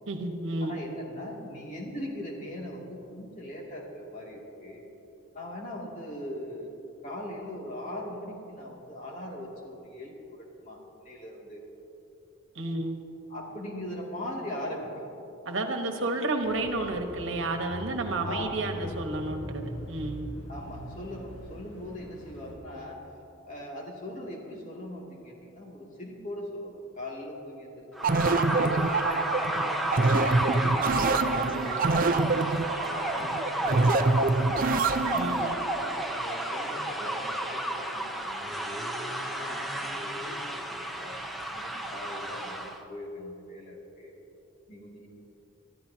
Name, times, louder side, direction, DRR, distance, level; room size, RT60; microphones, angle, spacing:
voice 1, 0.1-0.8 12.5-13.0 15.4-20.3 35.1-35.6, right 2 dB, 70° right, 4 dB, 1.3 m, -31 dB
voice 2, 0.6-4.8 5.3-6.7 7.0-10.8 11.0-11.6 13.3-15.1 18.2-18.8 20.5-23.0 23.4-29.6 29.9-30.0 30.5-32.3 32.7-34.5 35.2-38.1 38.4-39.0 39.4-41.2 41.5-44.1 44.7-45.1, left 1 dB, 40° left, -3 dB, 2.6 m, -40 dB
Bicycle / Mechanisms, 16.4-22.6, equal, 60° left, 2.3 m, -42 dB
sound 1, 27.9-42.8, right 1 dB, ahead, 0.8 m, -32 dB
sound 2, 28.0-35.5, right 3 dB, 45° right, 0.5 m, -26 dB
23.5 x 13.5 x 2.8 m, 2.9 s
head